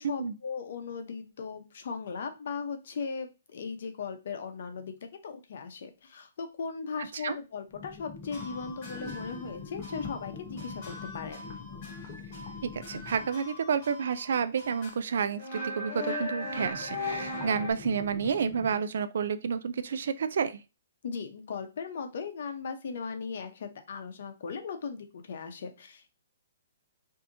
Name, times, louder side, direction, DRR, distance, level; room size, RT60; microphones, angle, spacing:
voice 1, 0.0-4.9 5.2-11.5 21.0-26.1, left 5 dB, 55° left, 6 dB, 0.9 m, -38 dB
sound 1, 7.7-13.4 16.4-18.7, left 5 dB, 20° left, 1.1 m, -44 dB
sound 2, 8.3-9.6 9.8-10.3 10.6-14.3 14.6-14.9 15.4-17.7, left 1 dB, 40° left, 2.1 m, -39 dB
voice 2, 12.6-20.6, right 6 dB, 60° right, 12 dB, 0.3 m, -30 dB
5.4 x 2.8 x 2.7 m, 0.29 s
hypercardioid pair, 165°, 0 cm